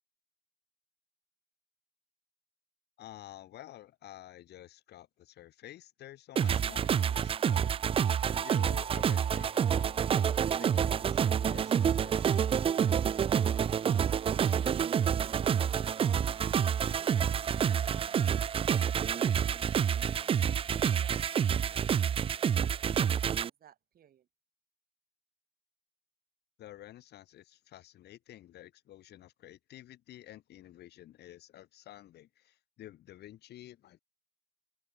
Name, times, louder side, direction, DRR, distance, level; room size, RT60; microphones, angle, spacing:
voice 1, 3.0-7.7 8.3-10.0 10.6-12.5 26.6-34.0, left 13 dB, 60° left, 3.0 m, -51 dB
sound 1, 6.4-23.5, right 8 dB, 30° right, 0.4 m, -28 dB
voice 2, 14.1-24.3, right 10 dB, 55° right, 3.6 m, -57 dB
hypercardioid pair, 65°, 19 cm